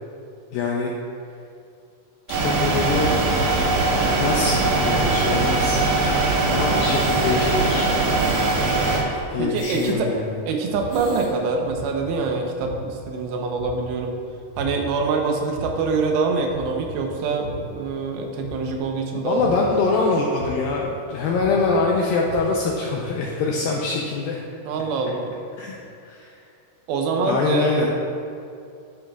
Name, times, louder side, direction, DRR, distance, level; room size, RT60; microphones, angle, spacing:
voice 1, 0.5-0.9 2.4-5.8 6.4-7.9 9.3-10.4 19.2-24.4 25.6-25.8 26.1-26.3 27.2-27.9, left 3 dB, 85° left, -1 dB, 2.0 m, -24 dB
sound 1, 2.3-9.0, right 3 dB, 65° right, 1.8 m, -21 dB
sound 2, 3.4-10.0 10.3-10.4 10.7-11.3, left 3 dB, 70° left, 2.5 m, -39 dB
voice 2, 9.4-10.2 10.4-14.1 14.6-19.7 24.7-25.4 26.9-27.9, right 4 dB, 90° right, 2 dB, 3.1 m, -25 dB
sound 3, 10.7-11.1 11.7-12.1 12.6-13.0 13.6-14.0 14.5-15.0 15.5-16.0 16.5-16.9 17.4-17.8 18.4-18.8 19.4-19.8 20.4-20.8 21.3-21.8 22.3-22.7, right 1 dB, 50° right, 3.0 m, -37 dB
10.0 x 9.4 x 2.4 m, 2.5 s
omnidirectional pair, 4.8 m